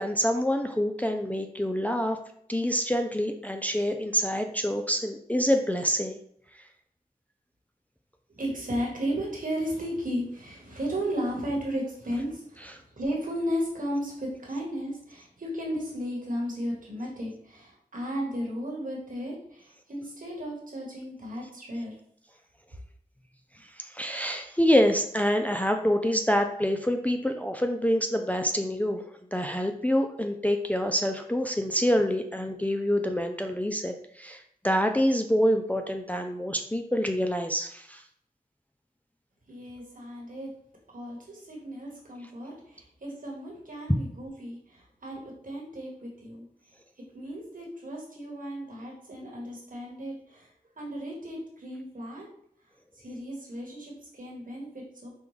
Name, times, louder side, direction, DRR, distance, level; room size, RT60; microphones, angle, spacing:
voice 1, 0.0-2.2 2.5-6.2 23.8-29.0 29.3-38.0, equal, 10° left, 4 dB, 0.4 m, -26 dB
voice 2, 8.3-22.0 39.5-40.5 40.9-46.4 47.1-50.5 50.8-52.3 52.9-55.1, equal, 65° right, -2 dB, 1.4 m, -34 dB
5.2 x 2.3 x 3.2 m, 0.67 s
cardioid pair, 50°, 15 cm